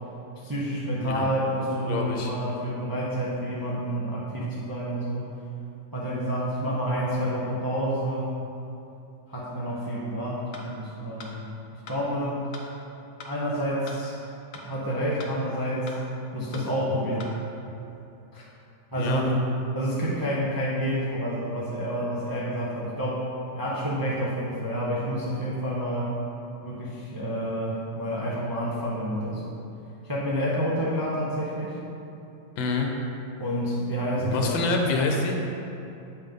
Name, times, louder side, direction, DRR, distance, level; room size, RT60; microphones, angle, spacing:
voice 1, 0.4-5.3 5.9-8.4 9.3-12.5 13.2-14.2 14.6-16.0 16.3-17.3 18.3-18.5 18.9-19.3 19.7-23.3 23.5-26.1 26.6-29.6 30.0-31.8 33.4-34.6, equal, 25° right, -6 dB, 0.5 m, -29 dB
voice 2, 1.9-2.3 19.0-19.2 32.6-32.9 34.3-35.4, left 3 dB, 75° left, 2 dB, 1.5 m, -26 dB
sound 1, 10.5-10.7 11.2-11.3 11.9-12.0 12.5-12.7 13.2-13.3 13.9-14.0 14.5-14.7 15.2-15.3 15.9-16.0 16.5-16.7 17.2-17.3, left 3 dB, 60° left, 0.9 m, -42 dB
8.2 x 5.6 x 3.6 m, 2.8 s
omnidirectional pair, 2.1 m